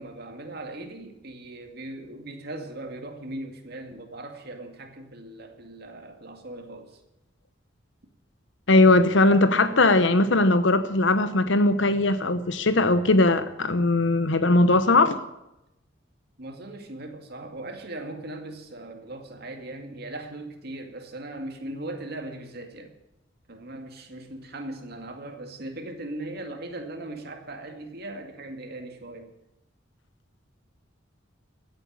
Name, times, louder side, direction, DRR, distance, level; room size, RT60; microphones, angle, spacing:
voice 1, 0.0-7.0 16.4-22.9 23.5-29.3, right 1 dB, 55° right, 4 dB, 2.3 m, -39 dB
voice 2, 8.7-15.2, left 2 dB, 70° left, 11 dB, 0.9 m, -20 dB
15.5 x 8.0 x 8.8 m, 0.90 s
head